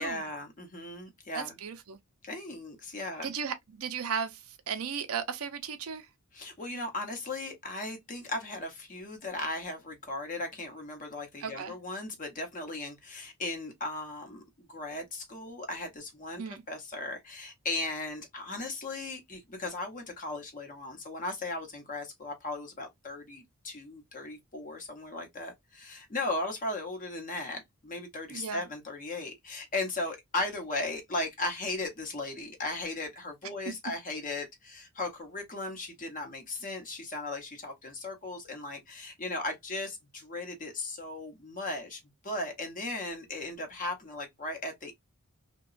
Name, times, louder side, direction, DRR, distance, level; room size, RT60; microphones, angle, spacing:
voice 1, 0.0-1.6 2.2-3.3 6.3-45.0, left 2 dB, 35° left, 0.8 m, -37 dB
voice 2, 1.3-2.0 3.2-6.1 11.4-11.7 16.4-16.6 28.3-28.6, right 6 dB, 70° right, 0.5 m, -36 dB
2.9 x 2.2 x 2.4 m
head